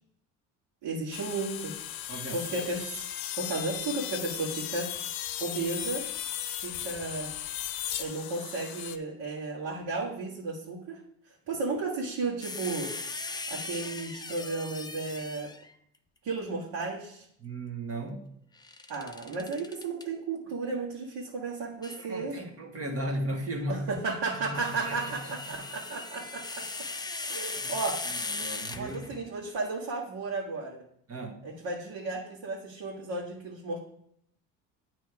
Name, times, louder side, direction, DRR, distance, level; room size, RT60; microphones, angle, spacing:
voice 1, 0.8-1.7 2.3-3.0 3.3-4.9 5.4-6.1 6.6-7.3 8.0-12.9 13.5-15.5 16.2-17.3 18.9-22.4 23.7-26.9 27.3-28.0 28.7-30.8 31.4-33.8, right 3 dB, 65° right, -5 dB, 1.7 m, -34 dB
sound 1, 1.1-9.0, left 12 dB, 65° left, 0.7 m, -36 dB
voice 2, 2.1-2.4 17.4-18.2 22.0-23.8 24.3-25.0 25.2-25.3 27.6-27.7 28.1-29.1 31.1-31.4, right 1 dB, 35° right, 3 dB, 1.5 m, -36 dB
sound 2, 12.4-15.7 18.6-20.1 21.8-22.0 24.1-29.3, left 3 dB, 10° left, 0.5 m, -38 dB
9.3 x 3.1 x 4.8 m, 0.69 s
supercardioid pair, 70°, 39 cm